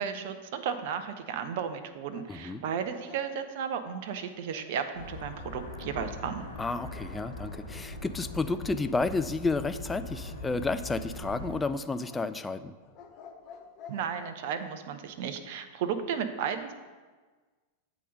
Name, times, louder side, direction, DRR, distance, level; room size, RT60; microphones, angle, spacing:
voice 1, 0.0-6.4 13.9-16.7, right 7 dB, 50° right, 9 dB, 0.6 m, -34 dB
sound 1, 2.1-4.7 10.1-11.0 12.0-14.7, left 6 dB, 40° left, 0.8 m, -51 dB
voice 2, 2.3-2.6 6.6-12.8, left 3 dB, 10° left, 11 dB, 0.3 m, -31 dB
sound 2, 4.9-11.6, left 2 dB, 75° left, 1.3 m, -41 dB
8.3 x 3.9 x 5.2 m, 1.3 s
figure-of-eight pair, 90°, 0 cm